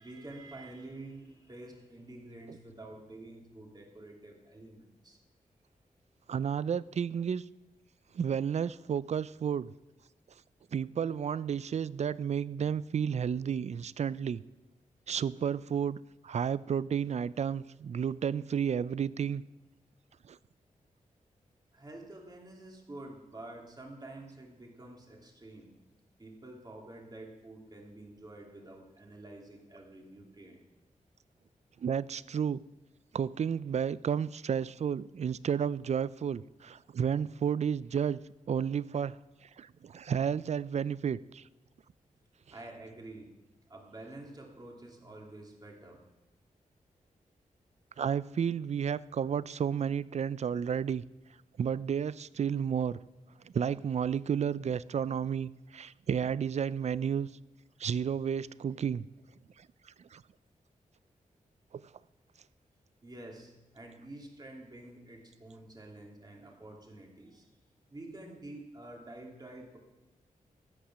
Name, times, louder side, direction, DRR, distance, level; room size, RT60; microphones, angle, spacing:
voice 1, 0.0-5.2 21.7-25.7 26.2-30.6 42.5-43.3 43.7-46.0 63.0-67.5 67.9-69.8, right 2 dB, 30° right, -1 dB, 3.1 m, -48 dB
voice 2, 6.3-7.4 8.1-9.7 10.7-14.4 15.1-16.0 16.2-19.4 20.3-20.4 31.8-32.6 33.1-38.2 38.5-39.2 39.6-41.4 48.0-51.0 51.6-53.0 53.4-57.3 57.8-59.0 60.1-60.2 61.7-61.8, right 7 dB, 50° right, 19 dB, 0.4 m, -32 dB
13.5 x 8.7 x 6.2 m, 1.0 s
cardioid pair, 65°, 14 cm